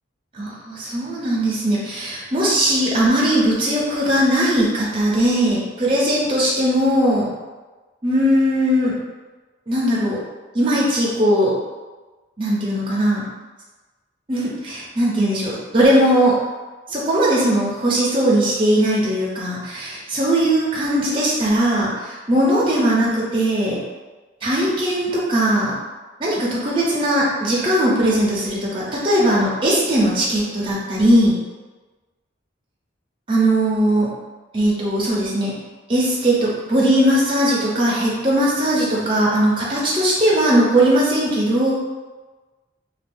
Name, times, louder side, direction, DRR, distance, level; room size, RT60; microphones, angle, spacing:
voice 1, 0.3-7.3 8.0-8.9 9.7-10.2 10.5-11.5 12.4-13.3 14.3-16.3 16.9-23.8 24.4-25.7 26.2-31.4 33.3-34.1 34.5-35.5 35.9-41.7, right 1 dB, 25° right, -6 dB, 0.6 m, -19 dB
2.5 x 2.4 x 3.4 m, 1.2 s
head